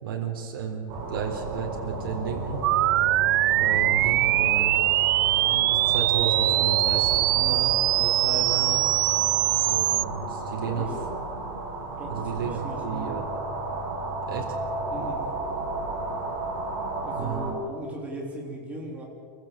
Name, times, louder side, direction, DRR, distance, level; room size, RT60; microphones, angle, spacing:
voice 1, 0.0-2.6 3.6-4.8 5.5-8.9 9.6-10.9 12.1-13.2 14.2-14.5 17.2-17.6, right 7 dB, 90° right, 1 dB, 3.9 m, -33 dB
sound 1, 0.9-17.5, right 2 dB, 30° right, 5.8 m, -33 dB
sound 2, 2.6-10.0, right 16 dB, 65° right, 0.4 m, -22 dB
voice 2, 10.6-11.0 12.0-13.2 14.9-15.3 17.0-19.0, right 1 dB, 10° right, -1 dB, 3.7 m, -37 dB
26.5 x 15.0 x 7.6 m, 2.4 s
supercardioid pair, 175°, 12 cm